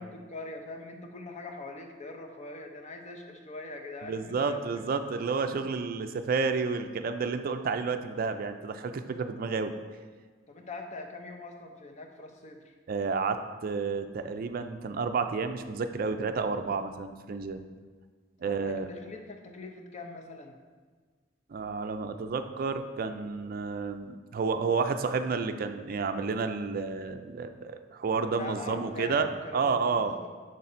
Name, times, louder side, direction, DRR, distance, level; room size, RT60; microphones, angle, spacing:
voice 1, 0.0-4.6 10.5-12.7 18.4-20.6 28.0-30.3, left 2 dB, 40° left, 3 dB, 0.6 m, -43 dB
voice 2, 4.0-9.7 12.9-17.6 18.4-18.9 21.5-30.1, right 4 dB, 50° right, 8 dB, 0.4 m, -30 dB
6.3 x 4.1 x 4.3 m, 1.5 s
head